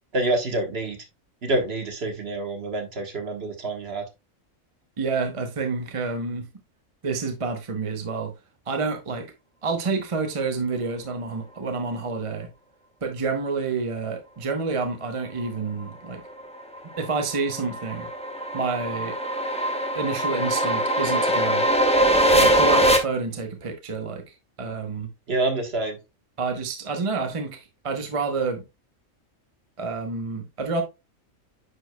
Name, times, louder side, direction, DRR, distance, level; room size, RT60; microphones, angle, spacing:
voice 1, 0.1-1.0 1.4-4.0 25.3-26.0, right 2 dB, 50° right, 1.5 m, -27 dB
voice 2, 5.0-6.5 7.0-8.3 8.7-9.3 9.6-12.5 13.0-16.2 17.0-18.1 18.5-19.2 19.9-21.7 22.3-25.1 26.4-28.6 29.8-30.8, right 4 dB, 30° right, 0.8 m, -28 dB
sound 1, 16.4-23.0, equal, 5° left, 0.8 m, -22 dB
9.8 x 4.8 x 2.2 m
omnidirectional pair, 1.4 m